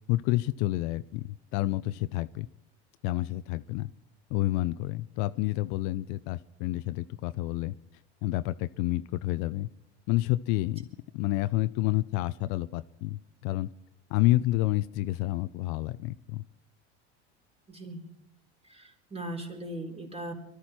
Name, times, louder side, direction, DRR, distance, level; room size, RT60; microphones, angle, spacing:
voice 1, 0.1-1.2 1.5-2.5 3.0-3.9 4.3-7.7 8.2-9.7 10.1-10.9 11.1-13.7 14.1-16.4, left 17 dB, 60° left, 14 dB, 0.6 m, -29 dB
voice 2, 17.7-18.1 18.6-20.3, right 1 dB, 15° right, 2 dB, 3.7 m, -39 dB
23.0 x 13.0 x 4.4 m, 0.82 s
hypercardioid pair, 95°, 34 cm